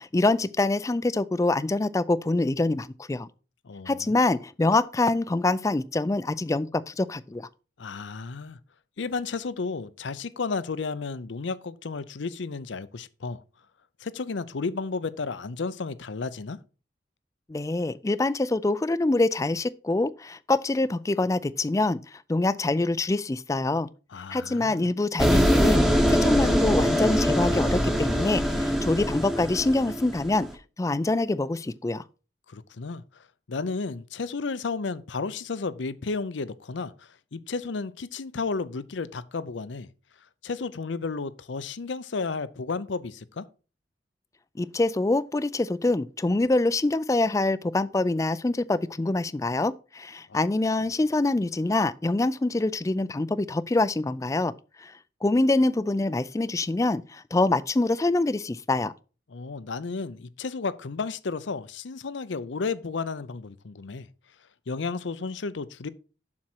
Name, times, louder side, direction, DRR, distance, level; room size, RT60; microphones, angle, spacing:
voice 1, 0.0-3.3 3.9-7.5 17.5-23.9 24.3-30.5 30.8-32.0 44.6-54.5 54.8-54.9 55.2-58.9, left 2 dB, 15° left, 0.3 m, -25 dB
voice 2, 3.6-4.2 7.8-8.6 9.0-13.4 14.0-16.6 24.1-24.9 32.5-39.9 40.4-43.5 59.3-64.1 64.7-65.9, left 4 dB, 80° left, 0.6 m, -33 dB
sound 1, 25.2-30.5, equal, ahead, 0.9 m, -23 dB
7.4 x 6.2 x 4.5 m
head